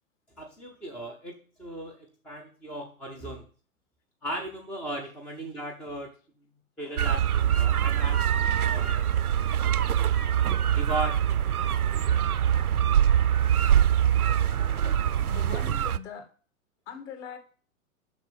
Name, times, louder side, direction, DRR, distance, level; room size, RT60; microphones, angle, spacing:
voice 1, 0.4-3.5 4.2-6.1 6.8-8.2 8.6-9.1 10.7-11.4, right 1 dB, 5° left, 2 dB, 0.4 m, -37 dB
sound 1, 7.0-16.0, right 10 dB, 85° right, 0.6 m, -24 dB
voice 2, 15.2-16.3 16.9-17.4, left 7 dB, 50° left, 6 dB, 2.4 m, -41 dB
7.1 x 6.0 x 7.5 m, 0.40 s
figure-of-eight pair, 110°, 43 cm